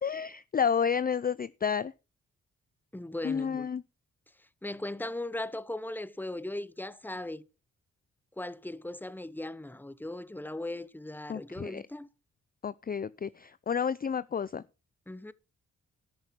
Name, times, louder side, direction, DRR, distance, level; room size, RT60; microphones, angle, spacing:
voice 1, 0.0-1.9 3.2-3.8 11.3-11.8 12.6-14.6, left 7 dB, 30° left, 0.4 m, -30 dB
voice 2, 2.9-3.7 4.6-7.4 8.4-12.1 15.1-15.3, left 1 dB, 5° left, 0.8 m, -38 dB
12.5 x 6.5 x 5.7 m
cardioid pair, 55°, 31 cm